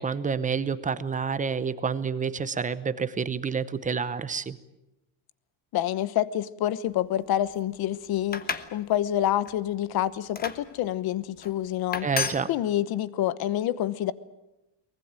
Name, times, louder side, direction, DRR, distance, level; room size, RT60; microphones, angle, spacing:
voice 1, 0.0-4.6 12.0-12.5, right 6 dB, 15° right, 14 dB, 0.8 m, -28 dB
voice 2, 5.7-12.1 12.5-14.1, left 12 dB, 50° left, 17 dB, 1.1 m, -27 dB
sound 1, 8.2-8.7 9.2-9.5 10.4-10.6 11.4-11.5 11.9-12.4, left 5 dB, 20° left, 1.1 m, -31 dB
23.5 x 20.0 x 8.9 m, 0.96 s
cardioid pair, 170°, 48 cm